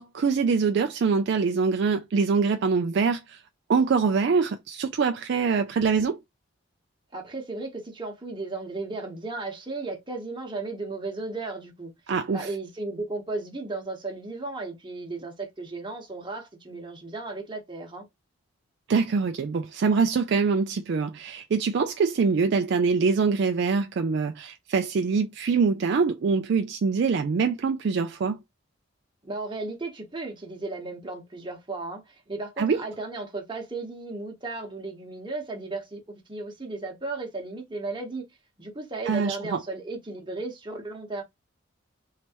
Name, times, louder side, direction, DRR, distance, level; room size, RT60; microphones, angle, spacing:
voice 1, 0.0-3.4 3.7-6.2 12.1-12.5 18.9-28.4 32.6-32.8 39.1-39.6, right 5 dB, 55° right, 0.3 m, -24 dB
voice 2, 7.1-11.9 12.3-18.1 29.2-38.3 38.6-41.2, right 3 dB, 20° right, 1.0 m, -35 dB
3.2 x 3.0 x 2.9 m
head